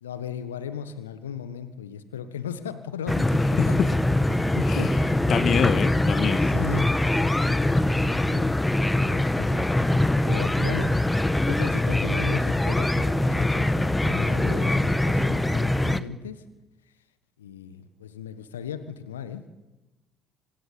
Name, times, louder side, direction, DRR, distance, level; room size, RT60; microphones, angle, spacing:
voice 1, 0.0-4.0 4.3-4.9 6.4-6.9 8.9-9.7 10.2-10.9 11.5-16.4 17.4-19.4, left 8 dB, 80° left, 11 dB, 1.4 m, -36 dB
sound 1, 3.1-16.0, left 1 dB, 10° left, 1.3 m, -23 dB
voice 2, 5.3-6.5, left 7 dB, 40° left, 14 dB, 1.5 m, -25 dB
26.0 x 22.5 x 8.7 m, 1.1 s
figure-of-eight pair, 55°, 0 cm